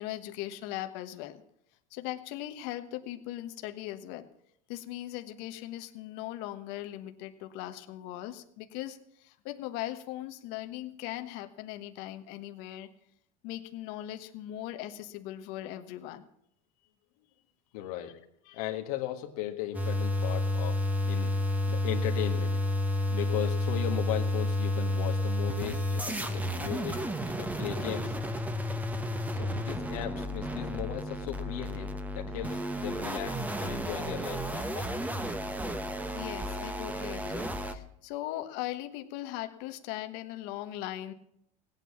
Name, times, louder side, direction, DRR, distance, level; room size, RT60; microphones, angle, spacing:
voice 1, 0.0-1.4 1.9-4.3 4.7-12.9 13.4-16.2 18.5-18.7 34.7-34.9 36.1-41.1, left 14 dB, 70° left, 8 dB, 1.4 m, -39 dB
voice 2, 17.7-18.2 18.5-21.4 21.7-22.6 23.1-28.2 29.3-34.8, left 12 dB, 85° left, 3 dB, 1.7 m, -37 dB
sound 1, 19.7-37.7, left 1 dB, 10° right, 1.2 m, -31 dB
17.5 x 9.1 x 7.2 m, 0.72 s
supercardioid pair, 130°, 18 cm